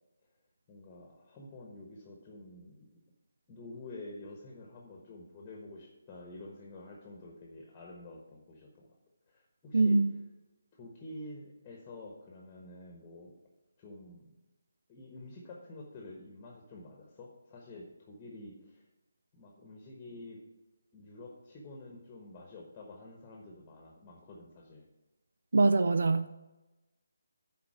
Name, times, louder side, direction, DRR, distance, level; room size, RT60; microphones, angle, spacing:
voice 1, 0.7-3.0 3.5-8.9 9.3-10.0 10.7-13.3 13.8-14.3 14.9-18.9 19.3-20.4 20.9-24.9, left 2 dB, 20° left, 0 dB, 1.2 m, -49 dB
voice 2, 9.7-10.1 25.5-26.4, right 3 dB, 60° right, 11 dB, 0.5 m, -24 dB
10.5 x 4.2 x 7.3 m, 1.0 s
figure-of-eight pair, 150°, 0 cm